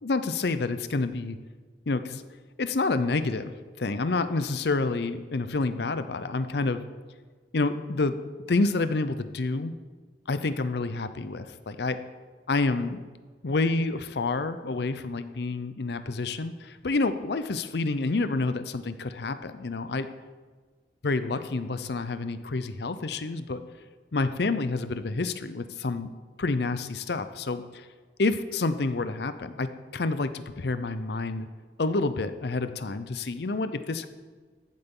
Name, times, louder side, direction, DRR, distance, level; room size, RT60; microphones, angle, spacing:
voice 1, 0.0-1.4 1.9-2.2 2.6-6.8 7.5-8.2 8.5-9.7 10.3-12.0 12.5-13.0 13.4-20.1 21.0-23.6 24.1-26.1 26.4-27.9 28.2-31.5 31.8-34.1, left 3 dB, 60° left, 11 dB, 0.6 m, -28 dB
15.0 x 8.0 x 3.8 m, 1.4 s
head